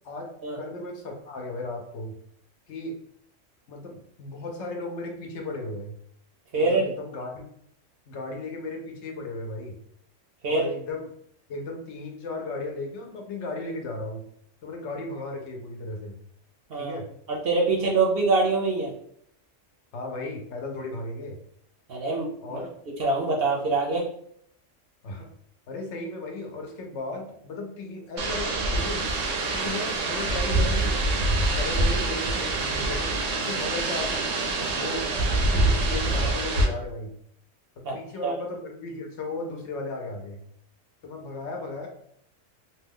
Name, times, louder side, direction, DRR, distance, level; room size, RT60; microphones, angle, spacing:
voice 1, 0.0-2.2 2.7-3.0 3.7-5.9 6.5-7.5 8.1-9.8 10.5-11.1 11.5-14.2 14.6-16.2 16.8-17.1 19.9-21.4 22.4-22.7 25.0-25.3 25.7-29.1 29.5-31.0 31.6-34.3 34.7-35.1 35.3-37.2 37.9-40.4 41.0-41.9, left 2 dB, 70° left, 2 dB, 0.9 m, -35 dB
voice 2, 6.5-6.8 10.4-10.7 16.7-17.0 17.3-18.9 21.9-22.6 23.0-24.1 37.8-37.9 38.2-38.3, right 3 dB, 60° right, -2 dB, 0.7 m, -24 dB
sound 1, 28.2-36.7, right 2 dB, 80° right, 1.0 m, -25 dB
2.7 x 2.2 x 3.5 m, 0.68 s
omnidirectional pair, 1.3 m